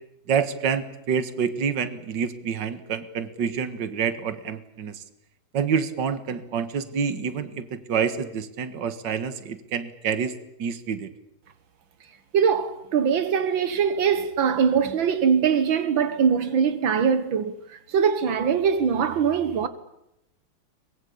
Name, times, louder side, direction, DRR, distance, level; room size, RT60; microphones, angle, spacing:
voice 1, 0.3-5.0 5.5-11.1, right 6 dB, 70° right, 2.2 m, -27 dB
voice 2, 12.3-17.5 17.9-19.7, right 7 dB, 85° right, 2.2 m, -22 dB
23.5 x 21.5 x 8.6 m
omnidirectional pair, 2.1 m